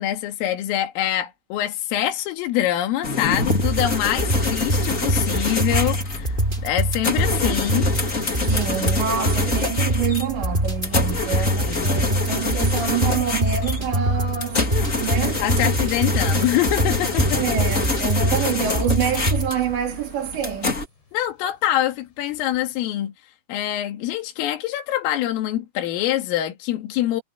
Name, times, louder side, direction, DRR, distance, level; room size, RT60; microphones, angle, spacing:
voice 1, 0.0-7.9 11.3-12.1 15.4-17.4 21.1-23.1 23.5-27.2, left 13 dB, 75° left, 4.9 m, -25 dB
sound 1, 3.0-20.8, left 3 dB, 30° left, 1.4 m, -27 dB
sound 2, 3.4-19.5, right 1 dB, 10° right, 2.9 m, -24 dB
voice 2, 8.4-15.7 17.3-20.8, right 8 dB, 60° right, 5.1 m, -27 dB
Thunder, 10.9-22.8, left 5 dB, 60° left, 6.9 m, -41 dB
omnidirectional pair, 5.9 m